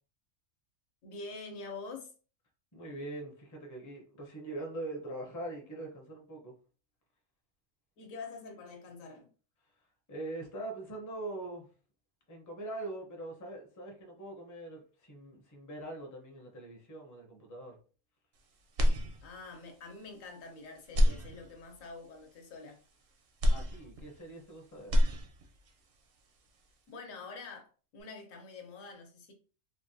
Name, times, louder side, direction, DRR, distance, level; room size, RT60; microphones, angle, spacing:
voice 1, 1.0-2.1 8.0-9.3 19.2-22.8 26.9-29.3, left 4 dB, 75° left, 1.1 m, -46 dB
voice 2, 2.7-6.5 10.1-11.7 12.3-17.8 23.5-25.0, right 2 dB, 25° left, 0.4 m, -42 dB
sound 1, 18.7-19.6 20.1-20.2 20.8-21.9 23.4-24.5 24.8-25.7, left 1 dB, 60° right, 0.6 m, -28 dB
3.3 x 2.2 x 2.6 m
omnidirectional pair, 1.4 m